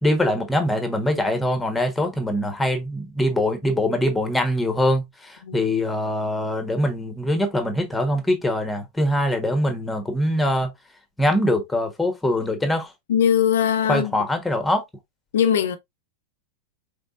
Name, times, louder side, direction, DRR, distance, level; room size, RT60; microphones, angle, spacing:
voice 1, 0.0-10.7 11.2-12.9 13.9-14.8, left 1 dB, 5° left, 1.3 m, -23 dB
voice 2, 13.1-14.1 15.3-15.8, left 8 dB, 60° left, 0.7 m, -20 dB
5.1 x 3.6 x 2.5 m
figure-of-eight pair, 90°, 0 cm